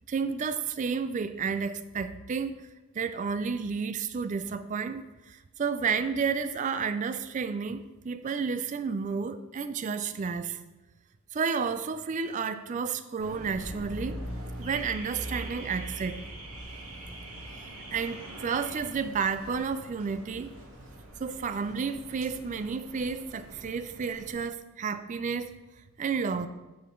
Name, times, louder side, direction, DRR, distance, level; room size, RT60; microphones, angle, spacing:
voice 1, 0.1-2.6 2.9-10.6 11.3-14.2 14.6-16.2 17.9-20.5 21.2-25.5 26.0-26.5, right 5 dB, 35° right, 12 dB, 0.3 m, -31 dB
Car / Alarm, 13.2-24.3, right 1 dB, 85° right, 1.6 m, -42 dB
6.6 x 5.6 x 3.7 m, 1.1 s
head